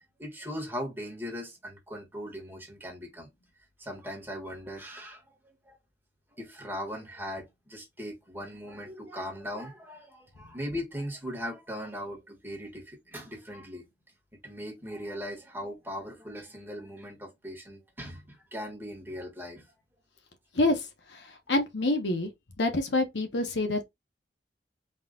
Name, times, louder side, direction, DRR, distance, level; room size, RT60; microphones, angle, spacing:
voice 1, 0.2-3.3 3.8-5.8 6.3-13.8 14.4-19.6, equal, 10° right, 1.4 m, -39 dB
voice 2, 20.5-20.9 21.1-22.3 22.6-23.8, left 2 dB, 75° left, 1.1 m, -27 dB
3.9 x 2.6 x 3.7 m
head